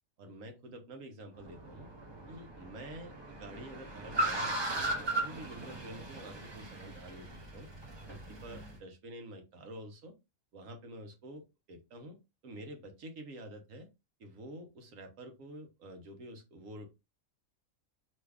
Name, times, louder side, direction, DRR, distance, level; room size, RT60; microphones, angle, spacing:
voice 1, 0.2-1.9 2.3-7.7 8.1-10.1 10.5-12.2 12.4-13.9 14.2-16.9, right 1 dB, 70° right, 4 dB, 1.2 m, -48 dB
Car, 1.4-8.7, right 1 dB, 25° right, 0.6 m, -38 dB
3.1 x 2.3 x 3.4 m, 0.24 s
omnidirectional pair, 1.5 m